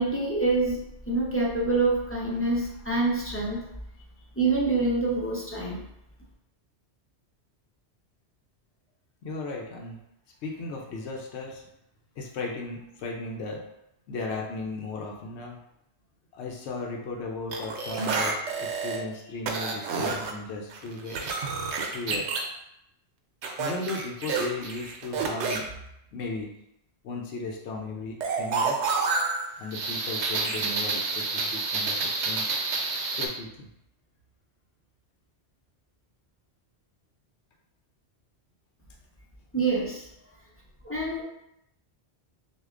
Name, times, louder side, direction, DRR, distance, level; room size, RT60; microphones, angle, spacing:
voice 1, 0.0-3.6 4.4-5.8 39.5-40.1 40.8-41.2, right 3 dB, 15° left, -5 dB, 0.6 m, -26 dB
voice 2, 9.2-10.0 10.4-11.6 12.2-13.6 14.1-15.6 16.3-21.2 21.9-22.4 23.6-25.7 26.1-26.5 27.0-28.8 29.6-32.5 33.1-33.7, left 3 dB, 80° left, 0 dB, 1.0 m, -36 dB
sound 1, 17.5-19.0 19.5-20.3 20.7-22.4 23.4-25.6 28.2-33.3, right 4 dB, 85° right, 0.9 m, -29 dB
6.4 x 2.4 x 2.5 m, 0.80 s
omnidirectional pair, 1.1 m